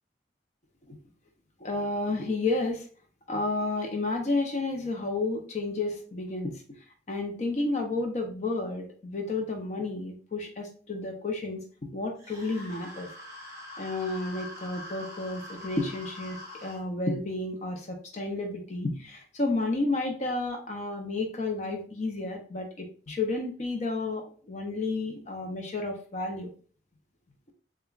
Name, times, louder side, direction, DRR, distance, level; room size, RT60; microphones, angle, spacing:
voice 1, 1.6-2.8 3.3-6.8 7.1-13.1 13.8-26.5, left 2 dB, 40° left, 3 dB, 0.6 m, -31 dB
sound 1, 12.2-16.8, left 1 dB, 20° right, 1.2 m, -44 dB
6.8 x 2.3 x 2.4 m, 0.42 s
head